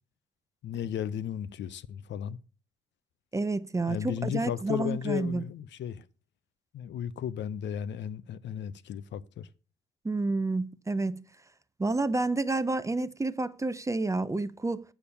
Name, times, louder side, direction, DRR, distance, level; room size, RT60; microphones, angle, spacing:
voice 1, 0.6-2.4 3.9-6.0 6.7-9.5, left 10 dB, 65° left, 0.6 m, -35 dB
voice 2, 3.3-5.4 10.0-11.2 11.8-14.8, right 2 dB, 15° right, 0.5 m, -29 dB
7.1 x 6.9 x 5.5 m
cardioid pair, 90°, 20 cm